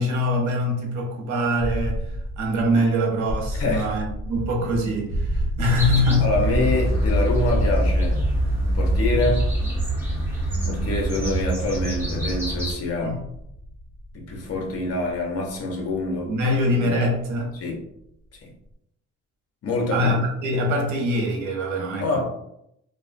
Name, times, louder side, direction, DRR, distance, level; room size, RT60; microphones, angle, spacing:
voice 1, 0.0-6.3 13.0-13.3 16.3-17.6 19.9-22.2, left 1 dB, 75° right, 1 dB, 0.8 m, -24 dB
sound 1, 1.6-17.4, equal, 40° right, 1.1 m, -31 dB
sound 2, 4.3-12.4, right 2 dB, 30° left, 1.3 m, -34 dB
sound 3, 5.8-12.7, right 1 dB, 10° right, 1.2 m, -25 dB
voice 2, 6.2-8.2 8.7-9.5 10.6-13.2 14.1-17.0 17.6-17.8 19.6-20.1 22.0-22.2, left 2 dB, 50° left, 1 dB, 0.7 m, -26 dB
2.3 x 2.2 x 2.5 m, 0.79 s
cardioid pair, 90°, 30 cm